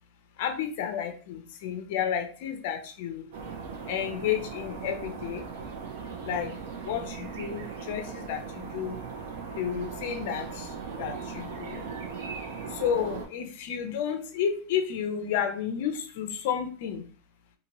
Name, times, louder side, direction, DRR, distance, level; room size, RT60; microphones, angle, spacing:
voice 1, 0.4-3.3 3.9-5.4 6.3-6.5 6.9-9.0 9.6-10.7 11.0-11.8 12.7-17.0, left 8 dB, 60° left, 6 dB, 0.5 m, -31 dB
sound 1, 3.3-13.3, right 5 dB, 70° right, 0.8 m, -38 dB
2.8 x 2.6 x 2.9 m, 0.40 s
supercardioid pair, 135°, 0 cm